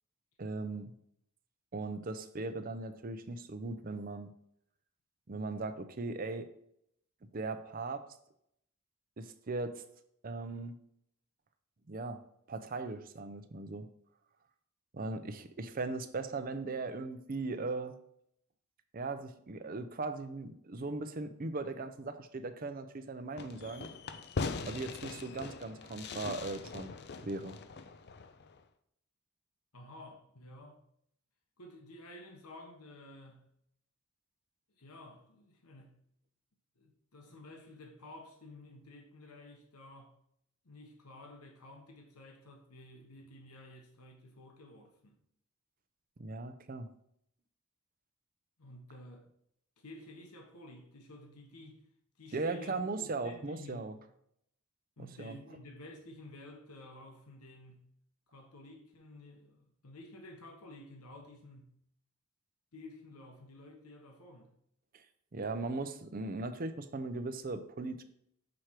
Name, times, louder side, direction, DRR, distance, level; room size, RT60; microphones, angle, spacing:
voice 1, 0.4-0.9 1.7-4.3 5.3-6.5 7.3-8.0 9.2-9.8 10.2-10.8 11.9-12.2 12.5-13.9 14.9-18.0 18.9-23.9 24.7-26.9 27.2-27.6 46.2-46.9 52.3-53.9 55.0-55.4 64.9-65.0 65.3-68.0, right 3 dB, 40° right, 0.6 m, -38 dB
Fireworks, 23.4-28.6, left 4 dB, 50° left, 0.4 m, -41 dB
voice 2, 29.7-30.8 31.6-33.5 34.8-36.0 36.8-40.1 40.6-45.2 48.6-49.3 49.8-51.8 52.2-54.0 55.0-57.9 58.3-61.7 62.7-64.5, left 1 dB, 90° left, 1.2 m, -52 dB
6.3 x 4.4 x 4.7 m
head